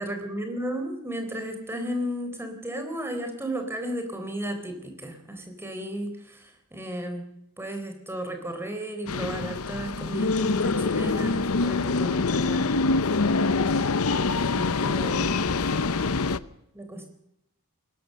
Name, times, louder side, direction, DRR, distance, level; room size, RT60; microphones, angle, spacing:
voice 1, 0.0-7.3 7.6-12.9 14.4-15.4 16.7-17.1, right 1 dB, 10° right, 5 dB, 3.9 m, -34 dB
sound 1, 9.1-16.4, left 3 dB, 70° left, 0.8 m, -25 dB
21.0 x 19.0 x 6.8 m, 0.80 s
head